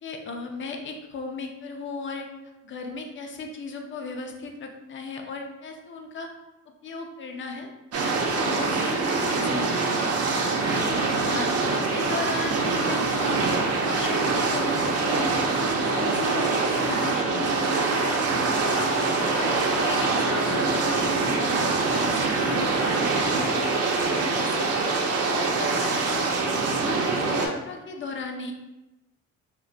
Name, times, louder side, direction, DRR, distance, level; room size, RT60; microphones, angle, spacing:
voice 1, 0.0-2.3 2.6-6.3 6.8-7.7 8.2-10.1 10.6-10.9 11.2-13.4 13.8-15.4 15.8-18.2 18.6-18.8 19.2-21.7 22.0-24.7 25.1-26.3 26.6-28.5, left 3 dB, 40° left, 3 dB, 0.5 m, -36 dB
sound 1, 7.9-27.5, right 3 dB, 55° right, 0.5 m, -24 dB
2.4 x 2.2 x 3.7 m, 1.0 s
cardioid pair, 90°, 30 cm